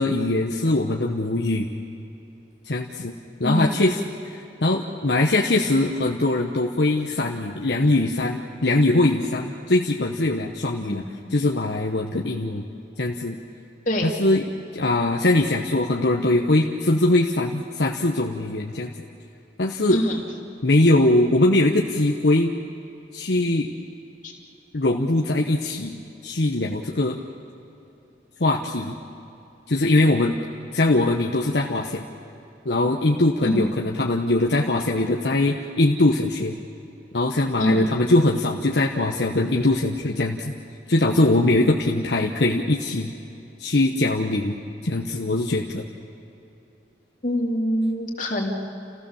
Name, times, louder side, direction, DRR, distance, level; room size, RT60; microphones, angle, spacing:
voice 1, 0.0-1.7 2.6-3.1 3.4-4.0 4.3-11.0 11.3-12.6 13.0-13.4 14.0-14.4 14.7-18.9 19.6-20.0 20.6-22.5 23.1-23.7 24.7-27.2 28.4-28.9 29.7-30.4 30.7-32.0 32.6-36.6 37.1-40.5 40.9-43.1 43.6-44.5 44.8-45.8, left 2 dB, 70° left, 0 dB, 1.1 m, -21 dB
voice 2, 3.4-3.8 10.8-11.1 13.8-14.1 19.9-20.2 24.2-24.3 33.4-33.7 37.6-37.9 47.2-48.5, left 1 dB, 45° left, -1 dB, 2.9 m, -24 dB
30.0 x 15.5 x 7.2 m, 2.9 s
head